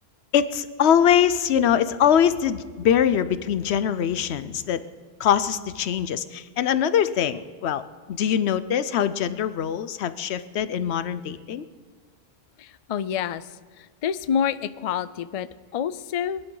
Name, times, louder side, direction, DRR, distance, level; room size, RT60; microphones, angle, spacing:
voice 1, 0.3-4.8 5.2-7.8 8.1-11.6, left 9 dB, 90° left, 13 dB, 0.9 m, -22 dB
voice 2, 12.6-13.5 13.8-16.4, left 8 dB, 55° left, 15 dB, 0.4 m, -28 dB
22.5 x 10.5 x 3.9 m, 1.5 s
omnidirectional pair, 1.1 m